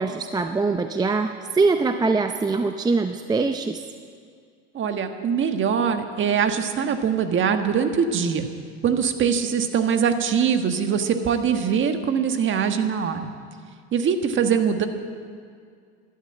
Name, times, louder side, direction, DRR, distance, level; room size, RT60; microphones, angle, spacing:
voice 1, 0.0-3.8, right 3 dB, 10° right, 7 dB, 0.6 m, -23 dB
voice 2, 4.7-8.5 8.8-13.3 13.9-14.9, right 7 dB, 35° right, 7 dB, 1.5 m, -22 dB
13.0 x 11.5 x 8.6 m, 2.2 s
supercardioid pair, 105°, 33 cm